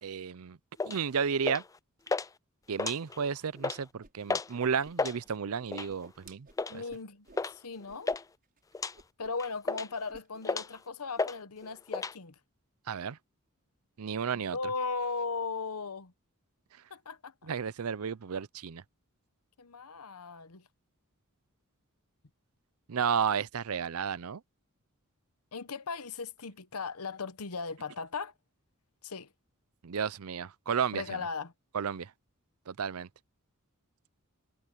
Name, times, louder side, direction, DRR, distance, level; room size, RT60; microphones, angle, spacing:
voice 1, 0.0-0.6 0.8-1.6 2.7-6.8 12.9-13.2 14.0-14.6 17.4-18.8 22.9-24.4 29.8-31.2 31.7-32.1 32.7-33.1, right 6 dB, 70° right, 0.6 m, -32 dB
sound 1, 0.8-1.0 1.5-1.8 2.1-2.3 2.7-3.3 3.6-3.8 4.3-4.5 4.8-5.2 5.7-6.0 6.6-6.8 7.4-7.6 7.8-8.2 8.7-8.9 9.4-10.0 10.4-10.8 11.2-11.4 11.6-12.1, left 3 dB, 15° left, 0.3 m, -32 dB
Whoosh swoosh swish, 4.0-4.1 4.4-5.3 5.6-7.5 7.9-8.2 8.4-8.6 8.9-9.5 9.7-10.3, right 2 dB, 40° right, 6.1 m, -56 dB
voice 2, 6.7-7.3 7.5-8.1 9.2-12.3 14.3-16.1 16.9-17.3 19.6-20.7 25.5-28.3 29.0-29.3 30.9-31.5, left 4 dB, 80° left, 1.1 m, -37 dB
head